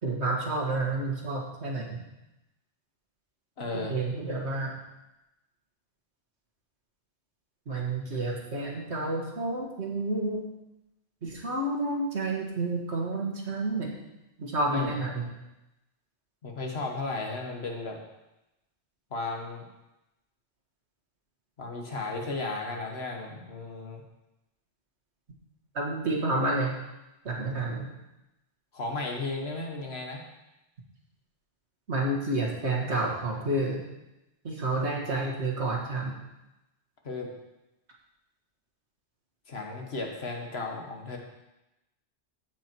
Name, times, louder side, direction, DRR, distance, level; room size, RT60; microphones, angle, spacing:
voice 1, 0.0-2.1 3.7-4.8 7.7-10.5 11.2-14.0 14.4-15.3 25.7-26.8 27.3-27.9 31.9-33.8 34.4-36.2, right 2 dB, 65° right, -1 dB, 2.0 m, -30 dB
voice 2, 3.6-4.0 14.7-14.9 16.4-18.0 19.1-19.6 21.6-24.0 28.7-30.3 34.8-34.9 37.0-37.3 39.5-41.2, left 3 dB, 60° left, 1 dB, 1.6 m, -34 dB
15.5 x 5.2 x 4.6 m, 0.95 s
omnidirectional pair, 1.2 m